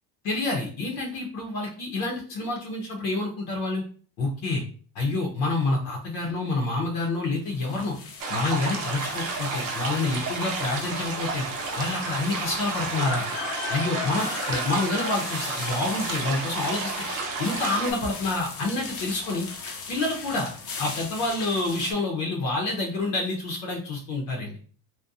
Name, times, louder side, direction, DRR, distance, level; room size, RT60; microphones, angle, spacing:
voice 1, 0.2-3.8 4.2-4.6 4.9-8.0 8.3-11.4 11.8-13.2 13.7-16.9 17.4-19.5 19.9-20.5 20.8-24.6, left 2 dB, 80° left, -1 dB, 0.7 m, -28 dB
sound 1, 7.5-21.9, left 4 dB, 40° left, 0.6 m, -38 dB
sound 2, 8.2-17.9, right 3 dB, 60° right, 0.7 m, -31 dB
2.7 x 2.2 x 2.3 m, 0.42 s
cardioid pair, 105°, 36 cm